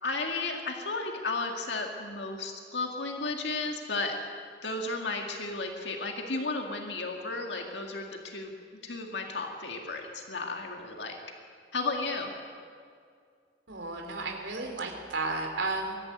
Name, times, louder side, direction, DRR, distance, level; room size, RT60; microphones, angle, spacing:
voice 1, 0.0-4.2 4.6-8.5 8.8-11.2 11.7-12.3, left 3 dB, 70° left, 2 dB, 2.1 m, -33 dB
voice 2, 13.7-16.0, right 3 dB, 80° right, 2 dB, 3.2 m, -33 dB
22.0 x 13.5 x 9.1 m, 2.2 s
head